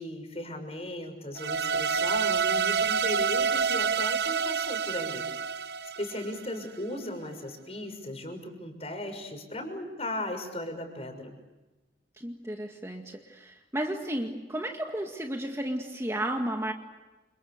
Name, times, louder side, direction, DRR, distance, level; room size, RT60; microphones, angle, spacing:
voice 1, 0.0-5.3 6.0-11.3, left 1 dB, 35° left, 5 dB, 6.4 m, -37 dB
sound 1, 1.4-6.6, right 6 dB, 65° right, 1.0 m, -28 dB
voice 2, 12.2-16.7, right 1 dB, 15° right, 2 dB, 2.0 m, -33 dB
29.5 x 28.5 x 6.8 m, 1.1 s
head